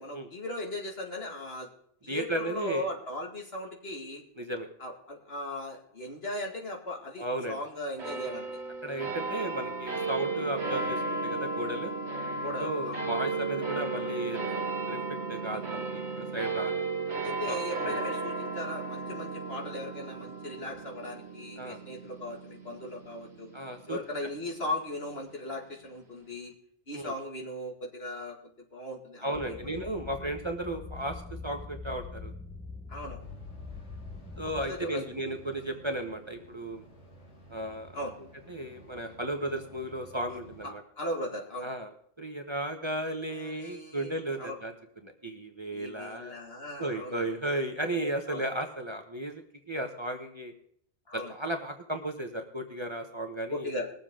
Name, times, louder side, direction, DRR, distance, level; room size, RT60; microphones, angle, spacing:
voice 1, 0.0-1.7 2.0-4.2 4.8-8.5 12.4-13.0 17.2-23.5 23.9-26.5 26.9-28.4 28.7-29.6 32.9-33.2 34.6-35.0 37.9-38.1 40.6-41.7 43.3-44.5 45.7-47.3 48.0-48.4 51.1-51.3 53.5-53.9, left 1 dB, 60° left, 1 dB, 2.4 m, -38 dB
voice 2, 2.1-2.9 4.4-4.7 7.2-7.6 8.8-11.9 12.6-14.4 14.9-16.9 17.4-18.0 21.6-21.8 23.5-24.0 26.9-27.1 29.2-32.3 34.4-36.8 37.5-38.0 38.5-40.8 41.6-41.9 42.2-44.7 45.0-46.3 46.8-50.5 51.1-53.7, right 1 dB, 25° right, 4 dB, 1.1 m, -35 dB
sound 1, 8.0-24.7, right 3 dB, 75° right, 2.0 m, -35 dB
sound 2, 29.3-34.7, left 4 dB, 5° left, 0.9 m, -43 dB
sound 3, 33.2-40.7, right 1 dB, 85° left, 2.4 m, -53 dB
21.0 x 7.5 x 3.8 m, 0.67 s
omnidirectional pair, 1.2 m